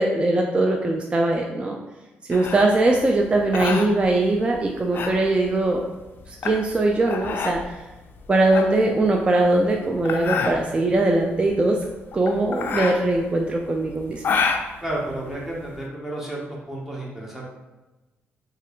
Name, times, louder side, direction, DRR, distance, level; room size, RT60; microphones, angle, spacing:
voice 1, 0.0-1.8 2.3-5.8 6.3-7.8 8.3-11.8 12.1-14.2, right 2 dB, 25° right, 1 dB, 0.3 m, -21 dB
sound 1, 2.3-15.8, left 5 dB, 55° left, 0.3 m, -29 dB
voice 2, 14.8-16.4 16.7-17.4, right 1 dB, 10° right, -4 dB, 0.9 m, -31 dB
3.0 x 2.4 x 2.9 m, 1.1 s
cardioid pair, 90°, 4 cm